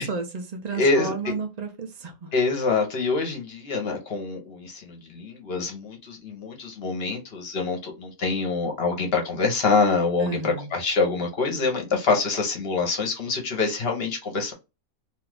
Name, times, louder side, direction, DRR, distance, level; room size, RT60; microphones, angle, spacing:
voice 1, 0.0-2.3 10.2-10.7, right 4 dB, 75° right, 4 dB, 0.3 m, -32 dB
voice 2, 0.7-1.3 2.3-14.5, left 4 dB, 50° left, 2 dB, 0.9 m, -25 dB
2.7 x 2.4 x 3.3 m, 0.27 s
omnidirectional pair, 1.5 m